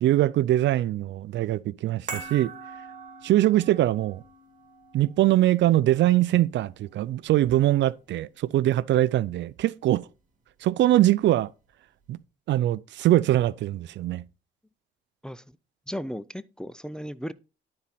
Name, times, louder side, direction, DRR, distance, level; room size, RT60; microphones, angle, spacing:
voice 1, 0.0-2.5 3.2-4.2 4.9-10.1 10.6-11.5 12.1-12.2 12.5-14.2, right 14 dB, 65° right, 0.4 m, -22 dB
sound 1, 2.1-8.5 8.8-8.9, right 4 dB, 40° right, 2.4 m, -44 dB
voice 2, 15.9-17.3, equal, 5° left, 0.4 m, -35 dB
11.5 x 4.3 x 4.1 m
cardioid pair, 90°, 20 cm